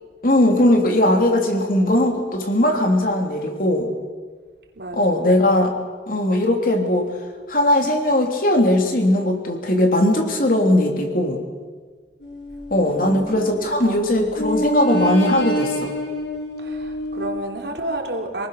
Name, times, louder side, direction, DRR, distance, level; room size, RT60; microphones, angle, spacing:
voice 1, 0.2-3.9 4.9-5.7 6.1-7.1 7.5-11.4 12.7-15.9, left 1 dB, 50° left, 3 dB, 3.1 m, -19 dB
voice 2, 4.8-5.4 12.8-14.0 16.6-18.5, right 1 dB, 65° right, 1 dB, 3.4 m, -31 dB
sound 1, 12.2-13.9 14.3-17.4, equal, 65° left, 5.5 m, -27 dB
28.0 x 19.5 x 6.7 m, 1.5 s
head